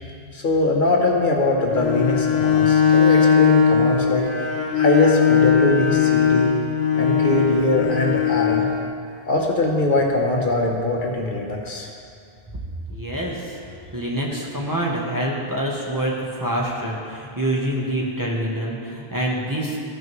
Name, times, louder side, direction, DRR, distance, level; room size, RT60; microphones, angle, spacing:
voice 1, 0.3-4.2 4.7-6.5 7.0-8.7 9.3-11.9, left 2 dB, 55° left, 0 dB, 1.0 m, -22 dB
Bowed string instrument, 1.7-8.7, left 7 dB, 85° left, 1.2 m, -19 dB
voice 2, 12.9-13.6 13.9-19.8, right 1 dB, 20° right, -4 dB, 1.0 m, -26 dB
14.0 x 5.8 x 3.1 m, 2.4 s
omnidirectional pair, 1.0 m